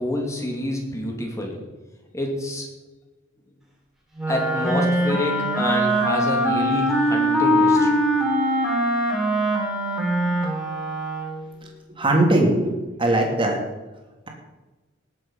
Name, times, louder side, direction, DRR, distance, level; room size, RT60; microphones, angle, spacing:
voice 1, 0.0-1.6 2.1-2.7 4.3-8.1, left 1 dB, 15° left, 0 dB, 2.8 m, -27 dB
Wind instrument woodwind instrument, 4.2-11.5, equal, ahead, 3.4 m, -22 dB
voice 2, 12.0-13.6, right 1 dB, 25° right, 1 dB, 2.8 m, -20 dB
19.0 x 7.9 x 5.6 m, 1.2 s
head